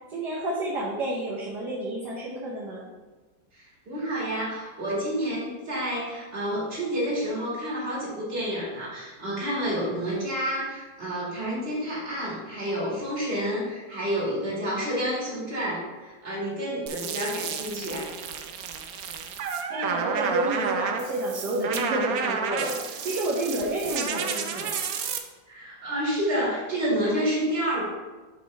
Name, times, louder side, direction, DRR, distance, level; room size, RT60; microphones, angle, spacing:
voice 1, 0.1-2.9 19.7-24.8, right 1 dB, 60° right, -5 dB, 1.5 m, -30 dB
voice 2, 3.5-18.1 25.5-27.9, equal, 30° right, -5 dB, 2.2 m, -29 dB
sound 1, 16.9-25.2, right 6 dB, 75° right, 0.8 m, -31 dB
7.5 x 5.2 x 3.3 m, 1.3 s
omnidirectional pair, 2.2 m